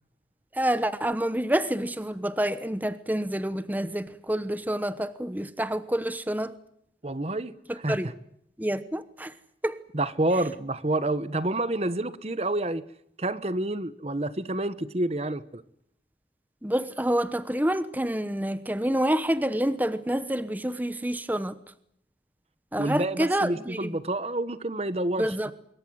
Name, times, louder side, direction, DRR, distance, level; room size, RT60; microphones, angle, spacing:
voice 1, 0.5-6.5 7.7-8.1 8.6-9.3 9.6-9.8 16.6-21.6 22.7-23.9 25.2-25.5, right 1 dB, 10° right, 13 dB, 1.0 m, -28 dB
voice 2, 7.0-7.5 7.8-8.0 9.9-12.8 13.2-15.6 22.8-25.5, right 1 dB, 35° right, 15 dB, 1.1 m, -28 dB
25.5 x 23.0 x 8.0 m, 0.72 s
head